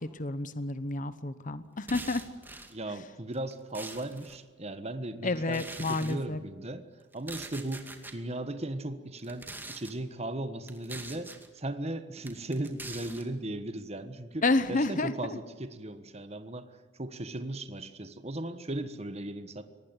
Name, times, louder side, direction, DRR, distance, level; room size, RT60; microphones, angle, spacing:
voice 1, 0.2-2.2 5.2-6.4 14.4-15.1, left 2 dB, 45° left, 12 dB, 1.0 m, -29 dB
sound 1, 1.8-2.7 3.3-4.4 5.5-6.2 7.1-8.2 9.2-9.9 10.7-11.5 12.2-13.2, right 2 dB, 10° right, 2.3 m, -44 dB
voice 2, 2.7-6.9 7.1-14.4 14.7-19.6, right 1 dB, 35° right, 10 dB, 1.4 m, -37 dB
24.5 x 19.5 x 9.8 m, 1.4 s
head